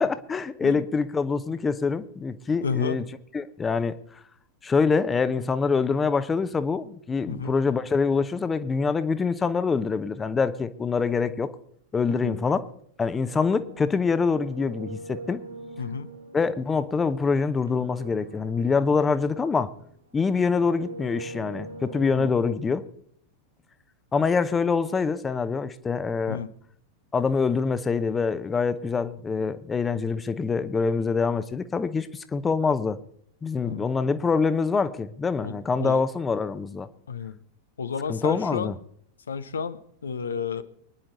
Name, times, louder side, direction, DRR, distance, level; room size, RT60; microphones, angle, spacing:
voice 1, 0.0-3.0 3.3-3.9 4.6-11.5 11.9-12.6 13.0-15.4 16.3-19.7 20.1-22.8 24.1-26.4 27.1-33.0 33.4-36.9 38.1-38.7, left 5 dB, 15° left, 12 dB, 0.9 m, -25 dB
voice 2, 2.6-3.0 7.3-7.6 12.1-12.4 15.8-16.1 22.1-22.3 26.3-26.5 33.6-33.8 35.4-36.0 37.1-37.4 37.8-38.7 39.3-40.6, left 6 dB, 70° left, 12 dB, 0.8 m, -31 dB
sound 1, 13.2-19.9 20.3-22.5, right 2 dB, 80° right, 5.7 m, -43 dB
24.0 x 10.5 x 4.0 m, 0.66 s
figure-of-eight pair, 90°, 0 cm